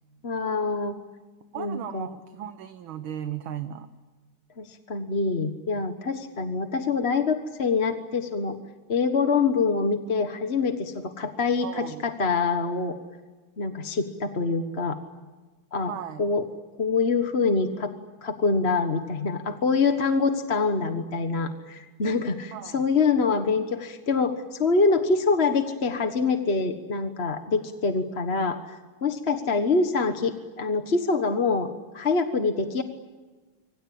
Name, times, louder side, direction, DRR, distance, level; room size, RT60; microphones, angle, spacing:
voice 1, 0.2-0.9 1.6-2.1 4.6-8.6 8.9-13.0 13.6-15.0 15.7-15.9 16.2-16.4 16.8-17.9 18.2-28.8 29.0-32.8, left 4 dB, 35° left, 7 dB, 1.4 m, -25 dB
voice 2, 1.5-3.9 11.6-12.0 15.8-16.2 22.5-22.8, right 10 dB, 70° right, 9 dB, 1.8 m, -36 dB
26.0 x 24.5 x 8.7 m, 1.3 s
omnidirectional pair, 2.4 m